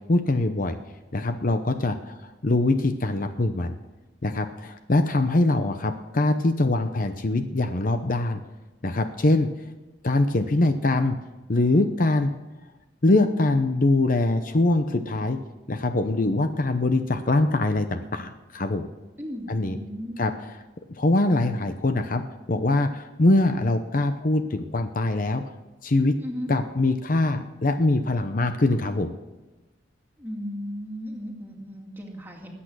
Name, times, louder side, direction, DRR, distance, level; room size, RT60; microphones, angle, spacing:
voice 1, 0.1-0.8 1.1-3.8 4.2-8.4 8.8-9.5 10.0-11.2 11.5-12.3 13.0-15.4 15.7-18.9 19.5-19.8 20.2-20.3 21.0-22.2 22.5-25.4 25.8-26.1 26.5-29.1, left 2 dB, 45° left, 8 dB, 0.8 m, -23 dB
voice 2, 19.2-20.2 26.2-26.5 30.2-32.6, equal, 10° right, 0 dB, 2.2 m, -35 dB
20.5 x 8.7 x 6.3 m, 1.1 s
head